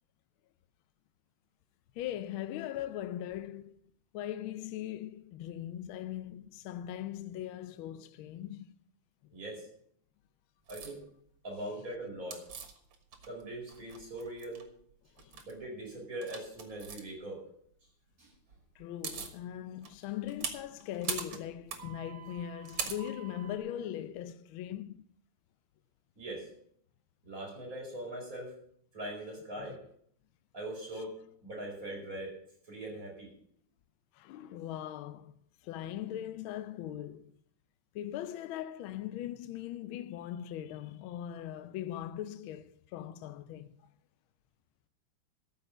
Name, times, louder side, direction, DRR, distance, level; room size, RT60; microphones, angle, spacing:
voice 1, 2.0-3.8 4.1-8.8 9.2-9.3 15.2-15.4 18.8-25.0 29.6-29.7 34.1-35.3 35.6-37.3 37.9-43.7, left 11 dB, 75° left, 1.4 m, -40 dB
voice 2, 9.3-9.7 10.7-11.0 11.4-12.4 13.3-14.6 15.4-17.4 18.2-18.3 26.2-26.5 27.2-28.5 28.9-29.8 30.5-31.1 31.4-32.3 32.7-33.3, right 1 dB, 40° right, 5.1 m, -41 dB
sound 1, 10.7-10.9 12.3-13.4 13.7-14.6 15.2-15.5 16.2-17.0 18.5-18.6 18.8-19.4 19.8-23.6, right 6 dB, 90° right, 2.4 m, -41 dB
13.5 x 5.5 x 8.9 m
omnidirectional pair, 2.3 m